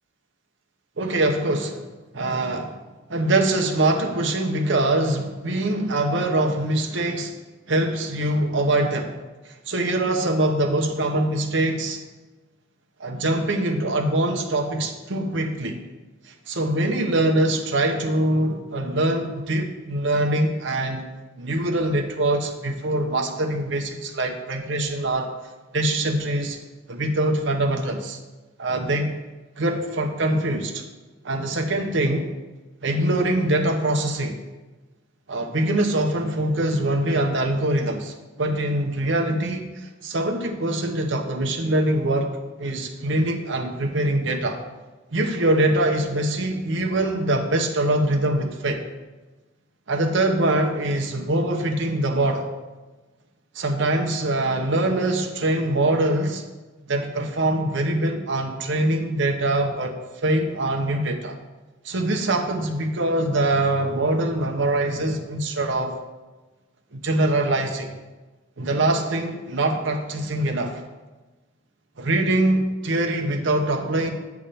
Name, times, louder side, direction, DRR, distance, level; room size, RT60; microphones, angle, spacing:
voice 1, 1.0-1.9 2.1-2.8 3.1-7.3 7.7-9.1 9.4-12.0 13.0-15.8 16.2-21.1 21.4-25.3 25.7-26.6 26.9-28.2 28.6-29.1 29.6-30.8 31.2-32.3 32.8-34.4 35.3-44.6 45.1-48.8 49.9-52.5 53.5-56.4 56.9-60.0 60.2-61.4 61.8-66.0 66.9-67.9 68.6-70.8 72.0-74.1, right 1 dB, 70° right, 3 dB, 0.8 m, -23 dB
8.8 x 3.6 x 6.8 m, 1.2 s
head